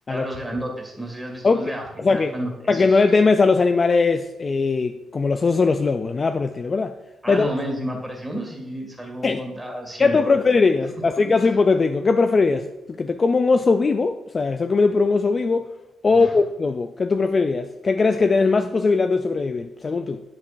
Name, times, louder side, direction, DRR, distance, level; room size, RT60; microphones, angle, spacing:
voice 1, 0.1-3.0 7.2-10.4 11.4-11.5 16.0-16.4, right 1 dB, 5° right, 1 dB, 2.1 m, -32 dB
voice 2, 2.0-2.3 2.7-6.9 7.3-7.5 9.2-9.4 10.0-12.7 13.0-15.7 16.0-20.2, left 4 dB, 30° left, 8 dB, 0.3 m, -20 dB
8.9 x 8.5 x 2.6 m, 1.0 s
cardioid pair, 135°, 0 cm